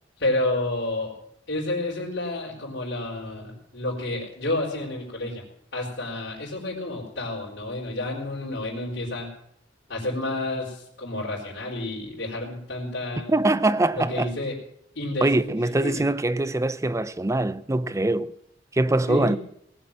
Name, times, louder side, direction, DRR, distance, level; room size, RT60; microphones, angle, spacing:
voice 1, 0.2-1.2 1.5-5.4 5.7-9.3 9.9-13.3 13.9-14.5 14.9-16.0 19.1-19.4, left 2 dB, 65° left, 4.5 m, -30 dB
voice 2, 13.3-14.3 15.2-18.3 18.7-19.4, right 2 dB, 15° right, 0.5 m, -23 dB
19.0 x 7.6 x 7.5 m
head